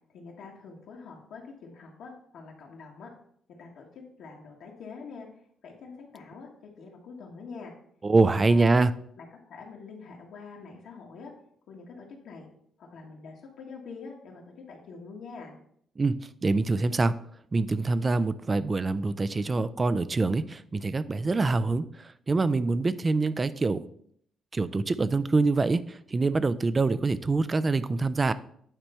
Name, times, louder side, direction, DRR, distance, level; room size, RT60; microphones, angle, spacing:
voice 1, 0.1-3.1 3.5-5.3 5.6-7.7 8.3-8.8 9.2-11.3 11.7-12.5 12.8-15.6, left 4 dB, 75° left, -1 dB, 1.5 m, -45 dB
voice 2, 8.0-8.9 16.0-16.2 16.4-17.1 17.5-23.8 24.5-28.3, right 3 dB, 30° right, 15 dB, 0.4 m, -25 dB
8.9 x 3.3 x 5.6 m, 0.66 s
cardioid pair, 90°, 0 cm